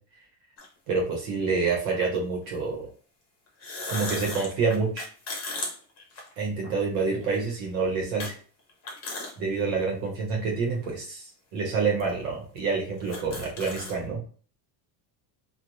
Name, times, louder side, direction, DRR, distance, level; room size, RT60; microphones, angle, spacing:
sound 1, 0.6-0.7 1.9-2.0 3.5-6.8 7.2-7.3 8.2-8.3 8.7-9.3 9.8-9.9 10.7-10.9 11.7-11.8 12.0-12.1 12.6-12.7 12.9-14.0, left 2 dB, 35° left, 0.8 m, -36 dB
voice 1, 0.9-2.9 3.9-5.1 6.4-8.4 9.4-11.2 11.5-14.2, right 4 dB, 75° right, 0 dB, 1.1 m, -27 dB
2.5 x 2.3 x 3.0 m, 0.41 s
cardioid pair, 135°, 48 cm